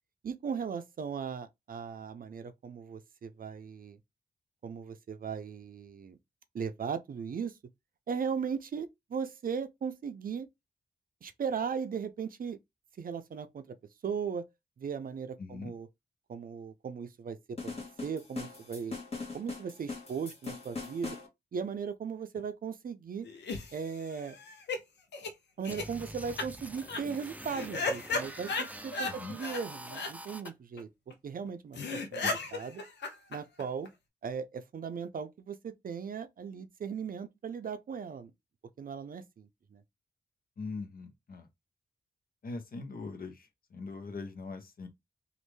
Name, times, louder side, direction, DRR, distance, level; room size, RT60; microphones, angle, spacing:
voice 1, 0.2-4.0 4.6-6.2 6.5-7.5 8.1-10.5 11.2-12.6 13.0-13.8 14.0-14.5 14.8-15.9 16.3-19.0 19.3-21.2 21.5-23.3 23.7-24.4 25.6-30.9 31.2-32.8 33.3-33.9 34.2-38.3 38.8-39.8, right 6 dB, 55° right, 0.5 m, -37 dB
voice 2, 15.4-15.7 29.1-29.4 32.2-32.3 40.6-41.5 42.4-44.9, left 3 dB, 55° left, 0.9 m, -41 dB
sound 1, 17.6-21.3, left 4 dB, 35° left, 1.5 m, -41 dB
sound 2, 23.2-24.8 25.1-25.3 25.6-25.8 26.4-26.5 26.8-27.0 27.5-29.1 29.4-29.6 29.9-30.1 30.5-30.6 30.8-30.9 31.1-31.2 31.5-31.6 31.7-33.9, left 3 dB, 80° left, 0.7 m, -35 dB
sound 3, 25.7-30.5, right 1 dB, 10° right, 0.5 m, -45 dB
3.1 x 2.5 x 3.1 m
cardioid pair, 55°, 17 cm